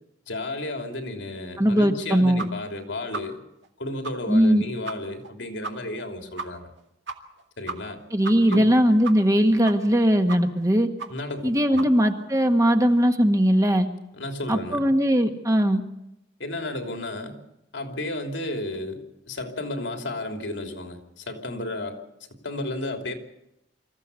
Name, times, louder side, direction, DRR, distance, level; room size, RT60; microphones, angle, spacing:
voice 1, 0.3-3.4 3.8-6.7 7.6-8.0 8.5-8.8 11.1-11.9 14.1-14.9 16.4-17.4 17.7-23.1, left 2 dB, 85° left, 4 dB, 3.2 m, -33 dB
voice 2, 1.6-2.4 4.3-4.6 8.1-10.9 11.4-13.9 14.5-15.8, equal, 20° right, 5 dB, 1.5 m, -20 dB
sound 1, 2.4-2.5 2.7-2.8 3.1-3.2 3.6-3.7 4.0-4.1 4.4-4.5 4.8-4.9 5.2-5.3 5.6-5.7 6.0-6.1 6.4-6.5 6.8-6.9 7.1-7.4 7.7-9.4 9.6-10.0 10.3-10.6 11.0-11.1 11.4-11.5 11.8-11.9, right 4 dB, 70° right, 2.1 m, -34 dB
25.5 x 15.0 x 8.3 m, 0.85 s
head